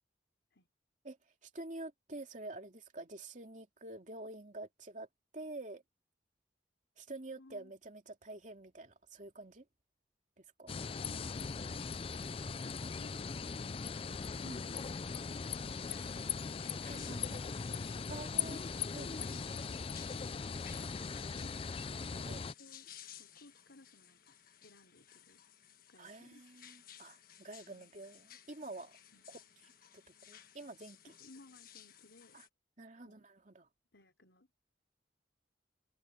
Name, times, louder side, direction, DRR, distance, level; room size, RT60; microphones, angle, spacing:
voice 1, 1.0-5.1 5.3-5.8 7.0-9.6 10.4-10.7 14.4-14.7 16.8-17.4 18.1-19.5 21.9-22.5 26.0-29.0 29.3-29.4 29.9-31.2 32.3-32.5 32.8-33.7, right 2 dB, 45° right, 2.6 m, -48 dB
voice 2, 7.4-7.7 10.7-11.8 22.6-24.4 24.6-25.5 25.9-26.4 27.7-27.9 29.1-29.3 31.1-32.4 33.0-33.2 33.9-34.5, left 2 dB, 80° left, 4.2 m, -61 dB
sound 1, 10.7-22.5, left 5 dB, 30° left, 0.4 m, -40 dB
sound 2, 15.4-32.5, left 10 dB, 55° left, 1.5 m, -57 dB
head